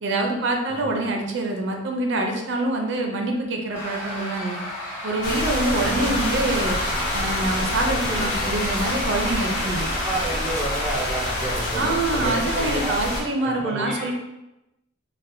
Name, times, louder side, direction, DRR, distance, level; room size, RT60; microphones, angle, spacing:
voice 1, 0.0-4.6 5.0-6.8 7.1-9.9 11.8-14.1, right 2 dB, 60° right, 2 dB, 0.4 m, -25 dB
sound 1, 3.7-11.6, equal, 30° left, 1.0 m, -33 dB
sound 2, 5.2-13.2, left 1 dB, 85° left, 1.2 m, -27 dB
voice 2, 5.7-6.2 7.8-8.5 9.9-13.0 13.4-14.1, right 1 dB, ahead, -4 dB, 0.4 m, -31 dB
4.1 x 2.1 x 2.5 m, 0.95 s
head